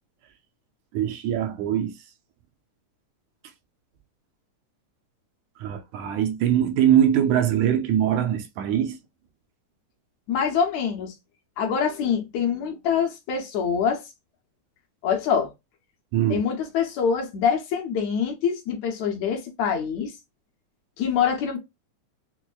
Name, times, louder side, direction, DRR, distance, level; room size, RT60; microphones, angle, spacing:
voice 1, 0.9-1.9 5.6-9.0 16.1-16.5, right 10 dB, 80° right, 1.9 m, -22 dB
voice 2, 10.3-11.2 11.6-14.0 15.0-15.5 16.3-20.1 21.0-21.6, left 7 dB, 70° left, 2.0 m, -25 dB
6.0 x 2.1 x 2.2 m
omnidirectional pair, 3.5 m